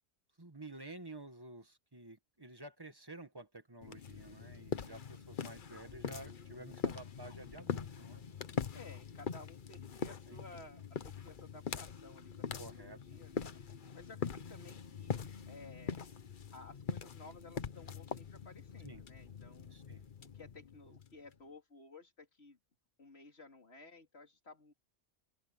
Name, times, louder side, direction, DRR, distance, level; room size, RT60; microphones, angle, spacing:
voice 1, 0.4-8.2 10.3-10.4 12.6-13.2 18.8-19.0 19.7-20.0, right 2 dB, 20° right, 1.7 m, -51 dB
sound 1, 3.8-21.3, left 6 dB, 50° left, 1.0 m, -43 dB
voice 2, 8.7-13.5 13.9-16.0 16.5-19.7 20.2-22.6 23.0-24.7, left 3 dB, 65° left, 3.2 m, -56 dB
open air
omnidirectional pair, 1.2 m